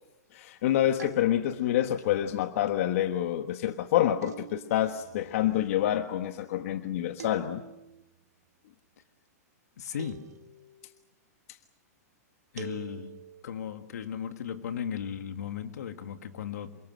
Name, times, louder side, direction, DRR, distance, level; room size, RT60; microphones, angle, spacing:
voice 1, 0.3-7.6, left 12 dB, 55° left, 1.4 m, -27 dB
sound 1, 1.0-1.8 4.2-5.0 7.2-8.0 10.0-10.8 12.6-13.4, right 8 dB, 90° right, 2.0 m, -45 dB
sound 2, 4.9-8.6, right 9 dB, 30° right, 6.2 m, -60 dB
voice 2, 9.8-10.5 12.5-13.2 13.4-16.8, left 8 dB, 80° left, 2.4 m, -36 dB
28.0 x 25.0 x 6.5 m
hypercardioid pair, 150°, 9 cm